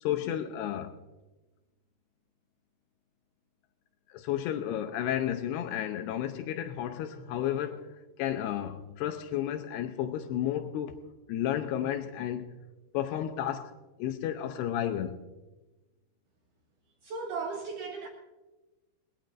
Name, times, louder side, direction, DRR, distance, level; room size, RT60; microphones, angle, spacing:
voice 1, 0.0-0.9 4.1-7.9 8.2-11.0 11.3-12.5 12.9-13.7 14.0-15.2, left 11 dB, 80° left, 2.7 m, -32 dB
voice 2, 17.0-18.1, right 4 dB, 75° right, 1.9 m, -36 dB
21.0 x 19.5 x 2.5 m
omnidirectional pair, 4.8 m